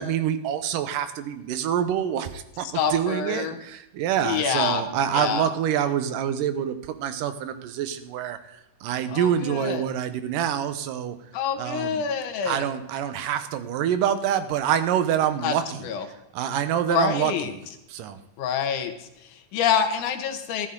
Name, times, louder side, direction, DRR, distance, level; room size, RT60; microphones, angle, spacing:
voice 1, 0.0-8.6 8.8-11.2 11.6-12.0 12.5-15.8 16.3-17.5 17.9-18.2, right 9 dB, 80° right, 10 dB, 2.5 m, -26 dB
voice 2, 2.6-3.6 4.2-4.9 5.1-5.5 9.1-9.9 11.3-12.7 15.4-16.1 16.9-17.5 18.4-20.7, left 7 dB, 70° left, 6 dB, 2.5 m, -27 dB
14.0 x 13.5 x 3.8 m, 0.89 s
omnidirectional pair, 3.8 m